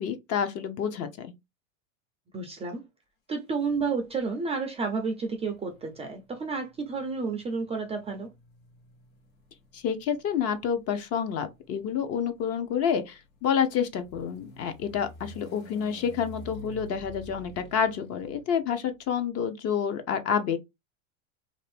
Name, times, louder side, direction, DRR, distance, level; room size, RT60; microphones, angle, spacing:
voice 1, 0.0-1.3 9.7-20.6, left 7 dB, 35° left, 0.7 m, -28 dB
voice 2, 2.3-2.8 3.3-8.3, right 4 dB, 15° right, 0.4 m, -31 dB
sound 1, 3.6-4.3 5.3-19.0, equal, 90° left, 1.3 m, -49 dB
2.6 x 2.5 x 3.3 m
supercardioid pair, 120°, 40 cm